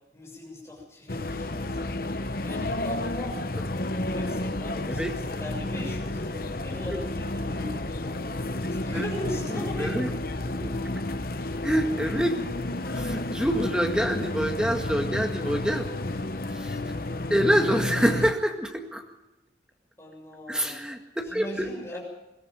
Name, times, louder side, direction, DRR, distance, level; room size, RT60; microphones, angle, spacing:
voice 1, 0.1-1.9 2.4-3.4 3.9-8.2 8.7-10.0 20.0-20.8 21.3-22.0, left 1 dB, 15° left, -3 dB, 7.0 m, -39 dB
sound 1, 1.1-18.3, left 2 dB, 50° left, 1.0 m, -31 dB
voice 2, 4.9-5.2 8.6-9.1 9.5-10.1 10.5-10.7 11.6-12.4 12.9-15.9 16.5-16.8 17.3-19.0 20.5-21.7, equal, 5° right, 4 dB, 1.8 m, -26 dB
22.0 x 14.0 x 9.1 m, 0.96 s
head